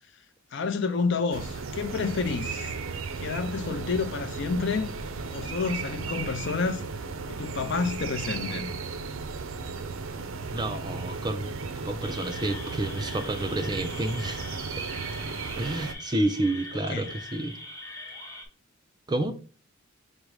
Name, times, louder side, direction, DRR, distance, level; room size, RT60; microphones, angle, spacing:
voice 1, 0.5-2.7 3.2-4.9 5.3-8.7 16.9-17.1, left 4 dB, 55° left, 0.5 m, -29 dB
sound 1, 1.3-15.9, right 4 dB, 75° right, 0.5 m, -35 dB
voice 2, 10.5-14.4 14.8-14.9 15.6-17.6 19.1-19.3, right 1 dB, 20° right, 0.4 m, -30 dB
sound 2, 12.0-18.5, left 2 dB, 15° left, 0.8 m, -42 dB
5.2 x 2.0 x 4.6 m
head